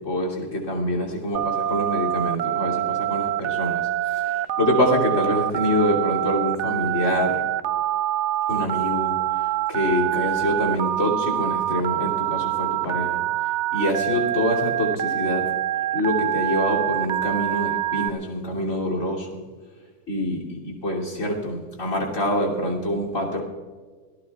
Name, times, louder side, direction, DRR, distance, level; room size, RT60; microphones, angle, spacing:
voice 1, 0.0-7.4 8.5-13.2 13.7-15.5 15.9-19.4 20.1-23.4, equal, 50° left, -4 dB, 3.4 m, -25 dB
Telephone, 1.3-18.1, right 13 dB, 75° right, 0.6 m, -25 dB
28.0 x 17.5 x 2.4 m, 1.5 s
omnidirectional pair, 1.8 m